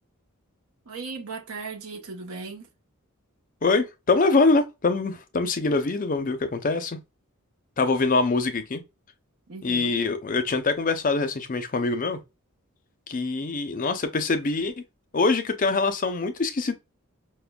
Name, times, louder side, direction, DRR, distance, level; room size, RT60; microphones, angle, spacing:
voice 1, 0.9-2.7 9.5-10.0, right 4 dB, 70° right, 0.8 m, -37 dB
voice 2, 3.6-7.0 7.8-8.8 9.6-12.2 13.1-14.7 15.1-16.8, left 3 dB, 40° left, 0.5 m, -24 dB
5.0 x 2.1 x 2.2 m
head